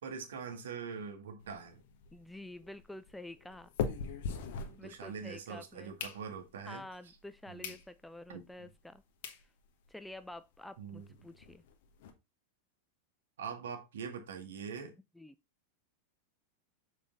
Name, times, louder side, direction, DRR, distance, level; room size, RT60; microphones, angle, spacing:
voice 1, 0.0-1.8 4.6-6.8 7.5-7.7 8.3-8.7 10.8-11.0 13.4-14.9, right 6 dB, 60° right, 1.7 m, -43 dB
sound 1, 1.4-5.3 5.7-6.7 7.2-7.3 7.6-7.8 8.3-8.4 8.9-9.0 9.2-9.4 9.9-10.0 10.1-10.3 10.5-10.6 11.0-12.1, left 6 dB, 50° left, 1.3 m, -41 dB
voice 2, 2.1-3.7 4.8-6.0 6.7-9.0 9.9-11.6 15.2-15.3, left 1 dB, 5° left, 0.4 m, -49 dB
7.0 x 5.1 x 3.9 m
figure-of-eight pair, 90°, 0 cm